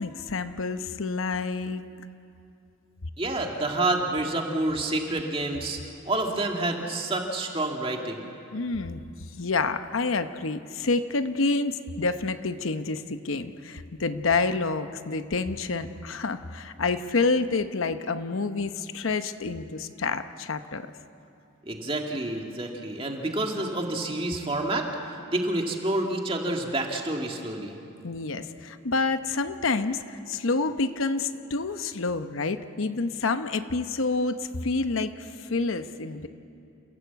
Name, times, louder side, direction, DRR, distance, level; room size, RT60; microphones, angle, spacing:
voice 1, 0.0-1.8 8.5-9.0 9.4-20.9 28.0-36.3, left 3 dB, 85° left, 10 dB, 0.9 m, -28 dB
voice 2, 3.2-5.8 6.0-8.2 21.6-27.8, right 2 dB, 25° right, 2 dB, 2.1 m, -28 dB
29.0 x 16.0 x 8.1 m, 2.6 s
head